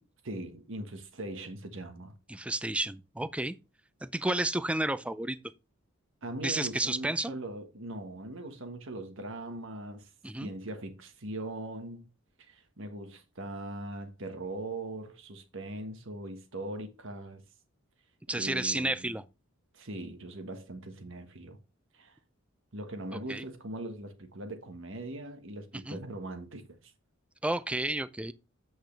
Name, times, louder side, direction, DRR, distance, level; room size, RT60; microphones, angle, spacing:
voice 1, 0.2-2.1 6.2-10.1 10.4-12.0 12.5-17.4 18.3-19.2 19.7-21.6 21.9-22.2 22.7-26.9, right 1 dB, 65° right, 1.4 m, -40 dB
voice 2, 2.3-3.6 4.0-5.4 6.4-7.4 10.2-10.5 18.3-19.2 23.1-23.4 25.7-26.0 27.4-28.3, right 1 dB, 5° right, 0.4 m, -31 dB
8.3 x 6.3 x 3.3 m
head